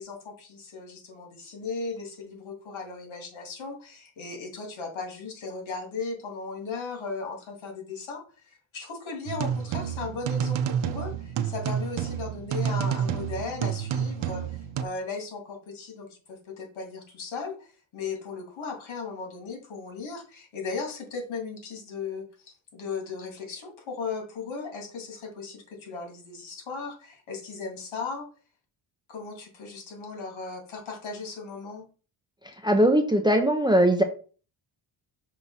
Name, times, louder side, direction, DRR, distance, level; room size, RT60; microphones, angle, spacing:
voice 1, 0.0-28.2 29.1-31.8, left 4 dB, 80° left, 2 dB, 2.4 m, -37 dB
sound 1, 9.3-14.8, right 8 dB, 70° right, 0.7 m, -29 dB
voice 2, 32.6-34.0, right 1 dB, 10° right, 5 dB, 0.5 m, -20 dB
5.8 x 3.0 x 5.5 m, 0.38 s
wide cardioid pair, 170°, 46 cm